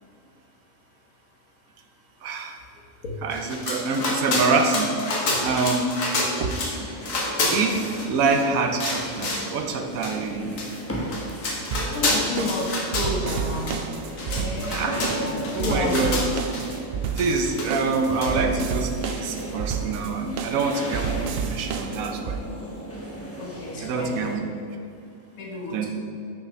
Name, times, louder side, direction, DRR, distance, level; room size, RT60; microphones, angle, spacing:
voice 1, 2.2-2.6 3.2-6.0 6.4-6.6 7.5-10.5 14.7-15.0 15.5-16.2 17.2-22.4 23.8-24.5 25.7-25.9, right 4 dB, 90° right, 4 dB, 1.2 m, -26 dB
sound 1, 3.3-6.8 7.0-8.4 8.8-9.5 10.0-10.1 10.6-10.7 11.0-13.4 13.7-13.8 14.1-16.6 17.2-17.9 18.2-18.3, left 2 dB, 70° left, 1.6 m, -28 dB
sound 2, 6.6-24.4, equal, 10° left, 0.9 m, -36 dB
sound 3, 11.7-22.4, right 7 dB, 65° right, 0.6 m, -31 dB
voice 2, 11.8-13.9 14.3-14.8 15.2-15.3 15.6-15.9 23.4-24.1 25.4-25.9, left 2 dB, 90° left, -1 dB, 1.6 m, -31 dB
6.5 x 5.7 x 5.2 m, 2.5 s
omnidirectional pair, 1.4 m